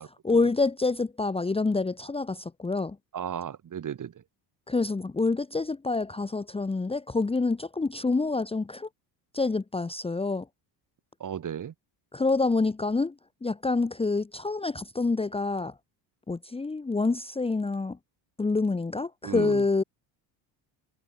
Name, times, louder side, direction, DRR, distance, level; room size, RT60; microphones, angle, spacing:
voice 1, 0.2-3.0 4.7-8.9 9.3-10.4 12.1-13.1 13.4-15.7 16.3-18.0 18.4-19.8, left 3 dB, 10° left, 1.1 m, -27 dB
voice 2, 3.1-4.2 11.2-11.7 19.2-19.6, right 9 dB, 40° right, 3.7 m, -35 dB
cardioid pair, 105°, 47 cm